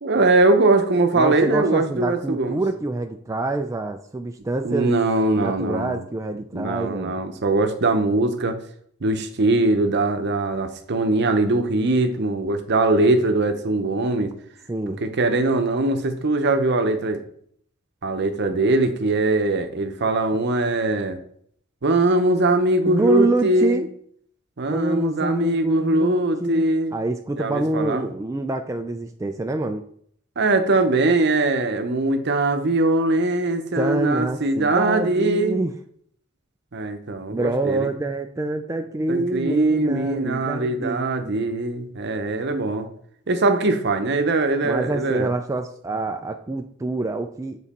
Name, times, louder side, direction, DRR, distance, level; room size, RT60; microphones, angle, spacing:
voice 1, 0.0-2.6 4.6-6.0 6.5-8.6 9.0-14.3 15.0-17.2 18.0-21.2 21.8-23.8 24.6-27.0 27.4-28.1 30.4-35.6 36.7-37.9 39.1-42.9 43.3-45.3, right 2 dB, 55° right, 8 dB, 0.7 m, -21 dB
voice 2, 1.1-4.9 5.4-7.2 14.7-15.0 22.8-23.9 24.7-26.7 26.9-29.8 33.8-35.7 37.3-41.1 44.6-47.6, right 2 dB, 15° right, 5 dB, 0.3 m, -26 dB
7.2 x 4.0 x 4.2 m, 0.64 s
head